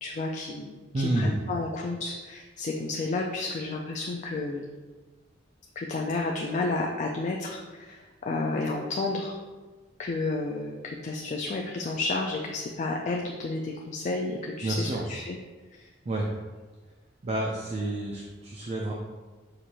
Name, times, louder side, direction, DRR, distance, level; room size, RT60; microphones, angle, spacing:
voice 1, 0.0-4.7 5.8-9.4 10.0-15.4 15.7-15.9, left 3 dB, 40° left, 0 dB, 0.3 m, -31 dB
voice 2, 0.9-1.4 14.6-15.0 16.1-16.3 17.2-18.9, right 1 dB, 35° right, -2 dB, 0.4 m, -29 dB
6.2 x 2.5 x 2.8 m, 1.3 s
head